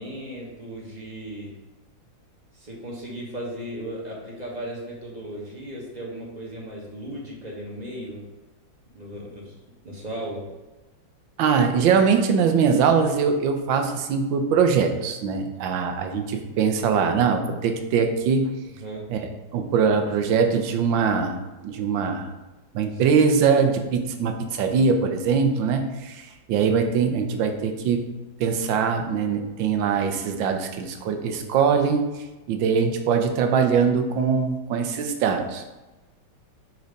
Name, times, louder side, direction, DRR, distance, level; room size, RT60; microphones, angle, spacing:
voice 1, 0.0-1.6 2.5-8.2 8.9-9.5 9.8-10.5 18.7-19.1 22.9-23.0, right 1 dB, 25° right, -3 dB, 1.3 m, -36 dB
voice 2, 11.4-18.5 19.1-19.2 19.5-22.3 22.7-26.2 26.5-28.0 28.4-32.1 32.5-35.7, right 6 dB, 80° right, 6 dB, 1.5 m, -22 dB
5.2 x 4.6 x 5.2 m, 1.1 s
omnidirectional pair, 2.1 m